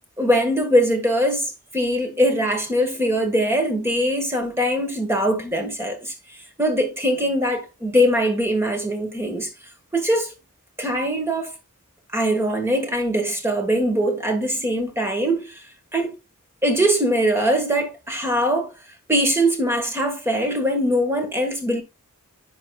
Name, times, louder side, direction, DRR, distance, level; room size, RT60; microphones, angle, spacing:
voice 1, 0.2-6.1 6.6-9.5 9.9-10.3 10.8-11.5 12.1-15.5 15.9-16.2 16.6-18.7 19.1-21.8, equal, 10° right, 1.4 m, -22 dB
9.9 x 4.9 x 2.3 m
head